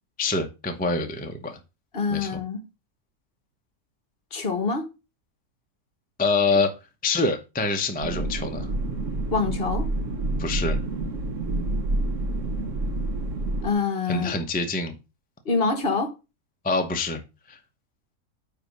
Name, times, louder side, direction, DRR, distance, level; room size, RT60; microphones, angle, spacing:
voice 1, 0.2-1.6 2.1-2.4 6.2-6.7 7.0-8.7 10.4-10.8 14.1-14.9 16.6-17.2 17.5-17.6, left 3 dB, 10° left, 0.7 m, -25 dB
voice 2, 1.9-2.6 4.3-4.9 9.3-9.9 13.6-14.3 15.4-16.1, left 4 dB, 40° left, 1.3 m, -25 dB
sound 1, 8.0-13.7, right 2 dB, 60° right, 1.2 m, -28 dB
9.5 x 3.6 x 5.1 m
omnidirectional pair, 1.6 m